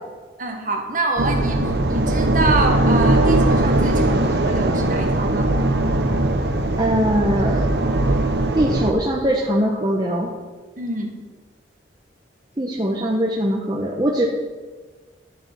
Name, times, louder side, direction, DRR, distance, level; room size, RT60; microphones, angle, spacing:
voice 1, 0.4-5.5 10.8-11.1, right 2 dB, 45° right, 2 dB, 1.4 m, -26 dB
sound 1, 1.2-8.9, right 1 dB, 60° right, 0.8 m, -19 dB
voice 2, 6.8-7.7 8.5-10.3 12.6-14.3, right 1 dB, 20° right, -1 dB, 0.8 m, -21 dB
11.5 x 6.8 x 5.3 m, 1.4 s
head